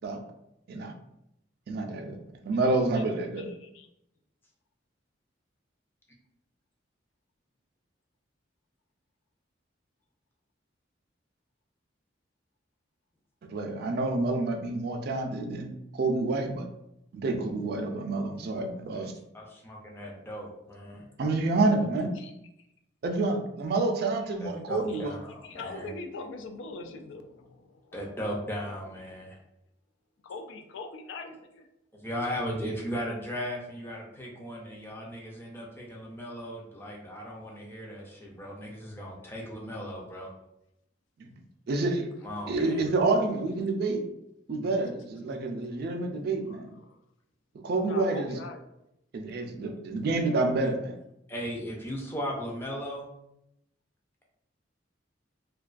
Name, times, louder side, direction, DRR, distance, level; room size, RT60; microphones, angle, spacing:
voice 1, 1.7-3.5 13.5-16.7 17.1-19.0 21.2-22.1 23.0-25.2 41.2-41.3 41.7-42.1 42.5-44.0 44.5-46.7 47.6-48.4 49.1-50.9, right 2 dB, 55° right, 4 dB, 0.3 m, -28 dB
voice 2, 3.4-3.9 22.2-22.3 24.9-25.1 25.4-28.1 29.1-29.3 30.2-31.7 46.5-47.0 47.9-48.6, left 3 dB, 80° left, 6 dB, 0.3 m, -43 dB
voice 3, 19.5-21.0 24.4-25.9 27.9-29.4 32.0-40.3 42.2-42.8 51.3-53.1, equal, 10° left, -2 dB, 0.4 m, -37 dB
2.3 x 2.2 x 2.4 m, 0.82 s
head